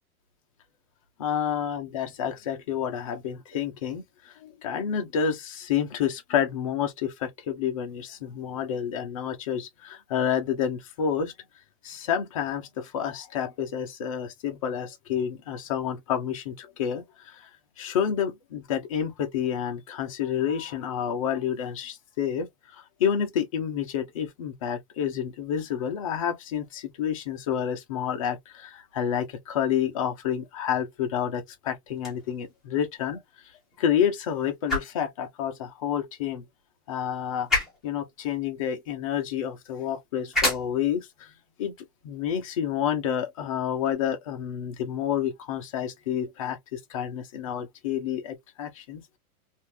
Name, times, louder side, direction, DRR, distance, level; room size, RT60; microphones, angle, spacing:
voice 1, 1.2-11.3 11.8-17.5 17.8-22.5 22.7-33.2 33.8-36.4 36.9-37.5 37.8-41.3 41.6-41.7 42.0-49.0, left 8 dB, 25° left, 0.5 m, -29 dB
sound 1, 31.9-43.9, left 2 dB, ahead, 0.8 m, -35 dB
3.4 x 2.5 x 2.7 m
supercardioid pair, 170°, 44 cm